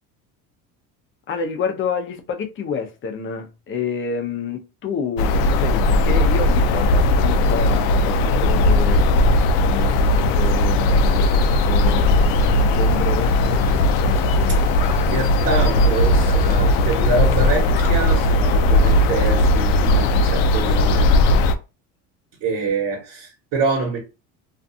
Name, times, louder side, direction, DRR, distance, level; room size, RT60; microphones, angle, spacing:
voice 1, 1.3-9.0 9.6-13.6, left 5 dB, 30° left, 0.6 m, -29 dB
sound 1, 5.2-21.5, left 1 dB, 85° left, 0.5 m, -17 dB
sound 2, 7.2-16.7, right 1 dB, 15° right, 0.9 m, -37 dB
voice 2, 15.1-21.1 22.4-24.0, right 3 dB, 60° right, 1.2 m, -25 dB
2.5 x 2.3 x 2.6 m
cardioid pair, 125°, 38 cm